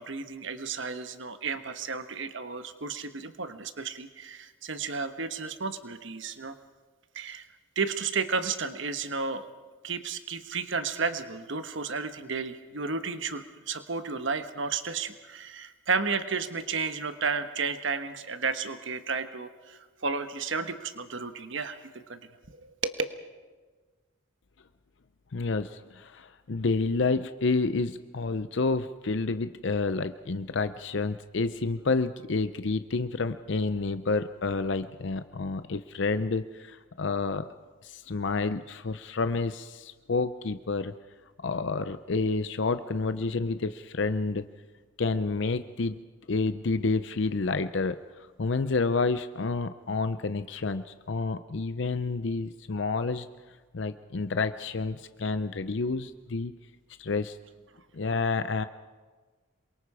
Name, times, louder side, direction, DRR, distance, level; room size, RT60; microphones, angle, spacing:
voice 1, 0.0-6.6 7.1-7.4 7.8-9.5 9.8-22.2 22.5-22.9, right 5 dB, 65° right, 9 dB, 1.2 m, -32 dB
voice 2, 25.3-37.5 37.8-40.9 41.4-44.4 45.0-46.0 46.3-53.3 53.7-56.6 57.0-57.4 57.9-58.6, left 3 dB, 60° left, 11 dB, 0.6 m, -29 dB
27.0 x 23.0 x 4.9 m, 1.4 s
head